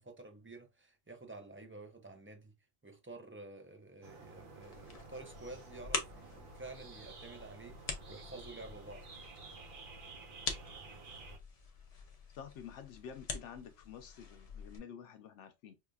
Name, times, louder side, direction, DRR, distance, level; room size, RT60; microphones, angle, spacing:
voice 1, 0.0-2.5 2.8-9.1, right 2 dB, 20° right, 0.3 m, -50 dB
sound 1, 4.0-11.4, right 4 dB, 55° right, 0.8 m, -52 dB
sound 2, 4.6-14.8, left 4 dB, 40° left, 0.6 m, -45 dB
voice 2, 12.4-15.7, left 8 dB, 85° left, 1.0 m, -49 dB
4.8 x 2.4 x 2.3 m
omnidirectional pair, 1.2 m